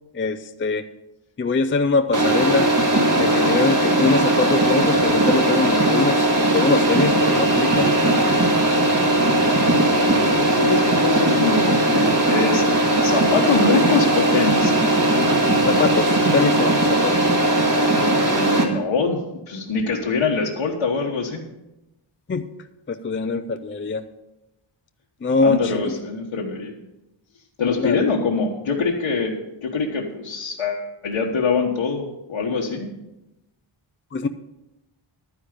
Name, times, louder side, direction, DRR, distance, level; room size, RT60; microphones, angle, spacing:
voice 1, 0.1-0.9 1.4-2.7 3.2-6.3 6.5-7.9 15.7-17.2 22.3-22.5 22.9-24.1 25.2-26.0 27.8-28.1 34.1-34.3, left 4 dB, 25° left, 9 dB, 0.4 m, -22 dB
sound 1, 2.1-18.6, right 1 dB, 40° right, 1.9 m, -18 dB
voice 2, 9.6-14.7 18.2-21.5 25.4-26.7 27.6-32.9, left 4 dB, 85° left, -3 dB, 1.4 m, -24 dB
12.0 x 9.8 x 5.1 m, 0.94 s
wide cardioid pair, 150°, 50 cm